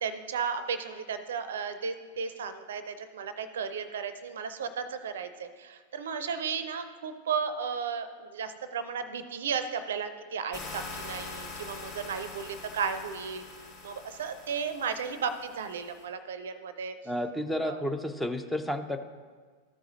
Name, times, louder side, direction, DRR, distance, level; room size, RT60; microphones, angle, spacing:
voice 1, 0.0-13.4 13.8-17.0 17.6-17.8, right 6 dB, 60° right, 11 dB, 0.5 m, -34 dB
sound 1, 10.5-16.0, left 3 dB, 50° left, 2.6 m, -44 dB
voice 2, 17.1-19.0, left 1 dB, 5° left, 6 dB, 0.5 m, -31 dB
13.5 x 4.8 x 3.9 m, 1.5 s
figure-of-eight pair, 90°, 0 cm